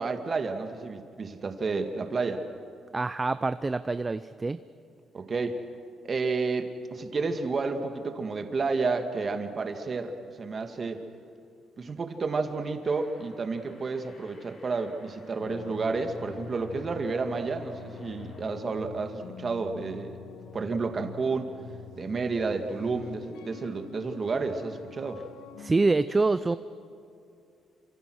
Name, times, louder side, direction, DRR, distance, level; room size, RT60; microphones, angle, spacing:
voice 1, 0.0-2.4 5.1-5.6 6.0-11.0 11.8-20.2 20.5-21.5 22.0-25.2, right 4 dB, 40° right, 6 dB, 2.1 m, -31 dB
voice 2, 2.9-4.6 25.6-26.6, right 3 dB, 25° right, 13 dB, 0.5 m, -26 dB
sound 1, 12.8-18.5, left 2 dB, 60° left, 7.2 m, -57 dB
sound 2, 15.4-25.8, left 7 dB, 90° left, 1.2 m, -45 dB
28.0 x 25.5 x 6.4 m, 2.5 s
cardioid pair, 90°, 0 cm